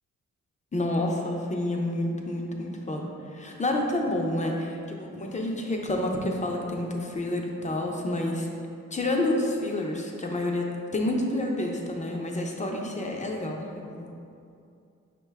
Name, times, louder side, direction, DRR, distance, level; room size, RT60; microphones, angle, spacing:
voice 1, 0.7-8.5 8.9-14.1, left 1 dB, 25° left, 0 dB, 0.6 m, -29 dB
5.5 x 2.2 x 3.4 m, 2.4 s
cardioid pair, 70°, 30 cm